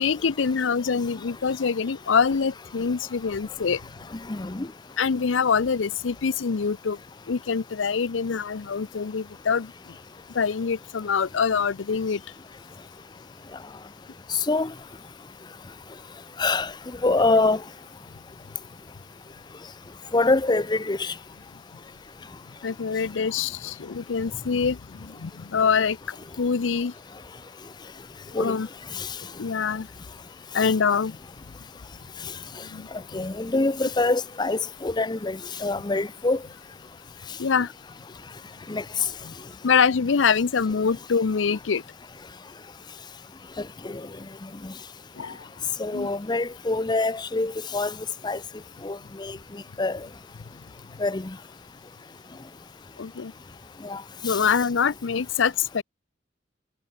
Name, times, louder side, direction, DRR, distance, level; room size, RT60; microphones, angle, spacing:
voice 1, 0.0-3.8 5.0-7.0 7.3-9.7 10.3-12.2 22.6-26.9 28.3-28.7 29.4-29.9 30.5-31.2 32.7-32.9 33.1-33.2 37.4-37.7 39.2-39.3 39.6-41.8 45.2-45.5 45.9-46.1 53.0-53.3 54.2-55.8, left 6 dB, 85° left, 0.6 m, -25 dB
voice 2, 4.3-4.7 14.5-14.7 16.4-16.7 17.0-17.6 20.1-21.1 28.3-28.6 29.0-29.1 33.1-36.4 38.7-38.8 43.8-44.0 44.6-44.7 45.8-47.9 48.2-48.4 48.8-49.4 49.8-50.0 51.0-51.3 53.8-54.0 54.3-54.4, left 2 dB, 25° left, 0.6 m, -25 dB
head